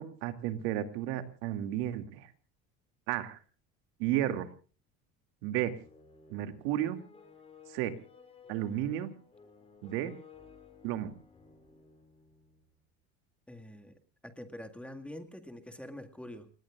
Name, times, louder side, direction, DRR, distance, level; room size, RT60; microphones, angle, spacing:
voice 1, 0.0-2.3 3.1-3.4 4.0-4.5 5.4-5.8 6.3-7.0 7.7-8.0 8.5-9.1 9.8-10.1 10.8-11.2, right 12 dB, 80° right, 8 dB, 2.5 m, -33 dB
sound 1, 5.8-12.7, left 5 dB, 20° left, 5.4 m, -57 dB
voice 2, 13.5-16.5, left 1 dB, 5° left, 6 dB, 1.9 m, -46 dB
29.5 x 19.0 x 2.5 m, 0.37 s
cardioid pair, 140°, 31 cm